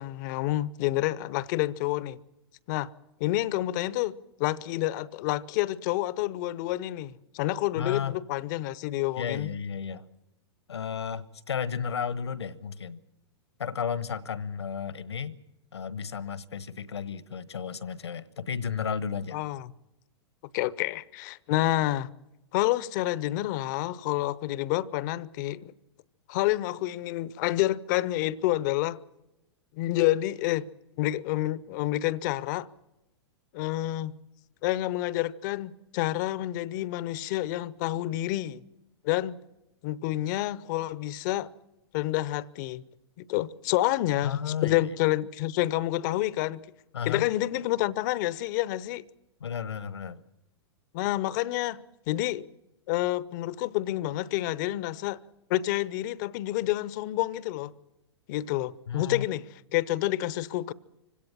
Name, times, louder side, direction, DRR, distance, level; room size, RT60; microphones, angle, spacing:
voice 1, 0.0-2.2 2.7-2.9 3.2-9.5 19.3-19.7 20.5-22.1 22.5-25.7 26.3-29.0 29.7-30.7 31.0-32.7 33.5-34.2 34.6-38.6 39.0-39.4 39.8-41.5 41.9-42.8 43.2-46.7 47.1-49.1 50.9-52.5 52.9-55.2 55.5-57.7 58.3-59.4 59.7-60.7, left 16 dB, 45° left, 0.8 m, -28 dB
voice 2, 7.7-8.2 9.2-10.0 10.7-13.0 13.6-15.4 15.7-19.4 44.2-45.0 46.9-47.3 49.4-50.2 58.9-59.3, left 7 dB, 70° left, 1.2 m, -33 dB
25.5 x 17.0 x 7.4 m
figure-of-eight pair, 100°, 14 cm